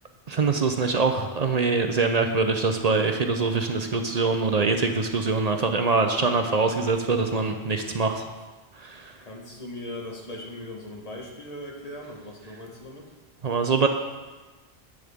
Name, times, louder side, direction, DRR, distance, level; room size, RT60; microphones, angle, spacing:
voice 1, 0.3-8.2 8.8-9.1 13.4-13.9, right 4 dB, 45° right, 5 dB, 0.6 m, -24 dB
voice 2, 9.2-13.1, left 1 dB, 35° left, -1 dB, 1.4 m, -39 dB
10.5 x 7.8 x 3.5 m, 1.3 s
omnidirectional pair, 1.1 m